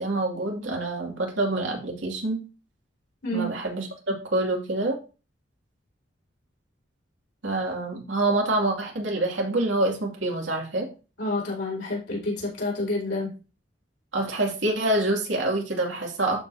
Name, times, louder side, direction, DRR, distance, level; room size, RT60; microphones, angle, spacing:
voice 1, 0.0-2.4 3.3-5.0 7.4-10.9 14.1-16.4, right 2 dB, 85° right, 0 dB, 2.5 m, -26 dB
voice 2, 11.2-13.3, left 2 dB, 70° left, -4 dB, 4.8 m, -28 dB
12.5 x 5.0 x 2.7 m, 0.33 s
head